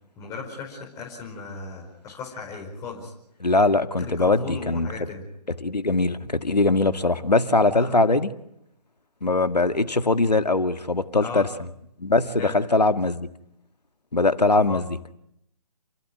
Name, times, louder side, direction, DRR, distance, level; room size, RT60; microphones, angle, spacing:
voice 1, 0.2-3.1 4.0-5.2 7.7-7.9 11.2-11.5 12.4-12.5 14.5-14.8, left 4 dB, 15° left, -2 dB, 5.1 m, -36 dB
voice 2, 3.4-4.9 5.6-8.3 9.2-11.5 12.0-13.3 14.1-15.0, left 2 dB, 85° left, 9 dB, 2.0 m, -21 dB
29.0 x 16.5 x 9.7 m, 0.76 s
figure-of-eight pair, 145°, 21 cm